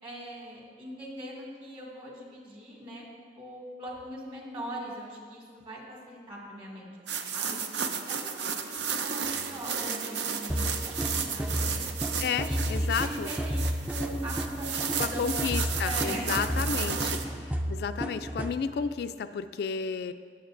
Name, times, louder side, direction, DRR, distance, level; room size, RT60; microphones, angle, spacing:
voice 1, 0.0-3.1 3.4-7.6 8.1-11.8 12.4-15.4 15.8-16.3 16.6-17.0, right 1 dB, 30° right, -3 dB, 2.0 m, -41 dB
sound 1, 7.1-17.2, right 6 dB, 80° right, 0.6 m, -33 dB
sound 2, 8.3-16.0, right 4 dB, 50° right, 1.8 m, -50 dB
sound 3, 10.5-18.6, equal, 10° right, 0.4 m, -32 dB
voice 2, 12.2-13.3 15.0-17.1 17.4-20.1, left 6 dB, 60° left, 10 dB, 0.3 m, -32 dB
18.0 x 7.3 x 2.5 m, 2.2 s
head